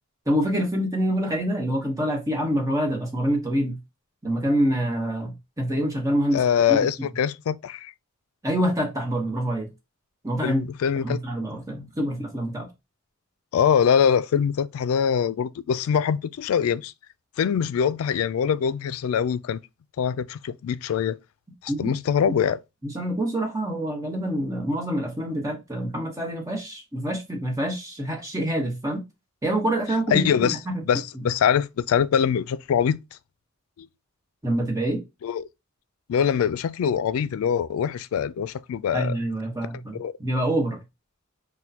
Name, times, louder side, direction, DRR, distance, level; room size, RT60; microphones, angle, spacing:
voice 1, 0.3-3.8 4.2-6.4 6.7-6.8 8.4-9.7 10.2-10.6 11.0-12.7 21.7-22.0 22.8-29.0 29.4-30.8 34.4-35.0 38.9-40.8, right 1 dB, 15° right, 1.0 m, -26 dB
voice 2, 6.3-7.9 10.4-11.2 13.5-16.9 17.4-19.6 20.0-21.2 21.6-22.6 30.1-30.6 30.9-33.0 35.2-35.5 36.1-39.2 40.0-40.1, left 7 dB, 75° left, 0.3 m, -23 dB
6.1 x 2.2 x 2.7 m
head